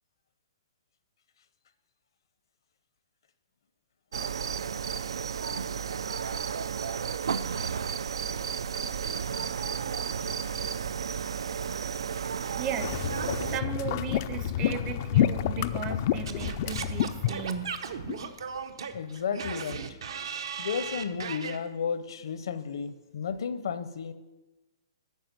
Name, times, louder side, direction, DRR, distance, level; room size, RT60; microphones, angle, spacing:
sound 1, 4.1-13.6, right 7 dB, 85° right, 0.3 m, -32 dB
voice 1, 12.6-13.0 13.5-17.7, right 7 dB, 20° right, 10 dB, 0.5 m, -36 dB
sound 2, 12.8-18.3 18.9-19.0 19.4-19.5, left 11 dB, 35° left, 0.3 m, -29 dB
Singing / Scratching (performance technique), 16.3-21.6, right 7 dB, 70° right, 0.8 m, -37 dB
voice 2, 18.9-20.0 20.6-24.1, left 6 dB, 65° left, 12 dB, 0.7 m, -33 dB
9.2 x 5.5 x 7.3 m, 1.1 s
hypercardioid pair, 165°, 3 cm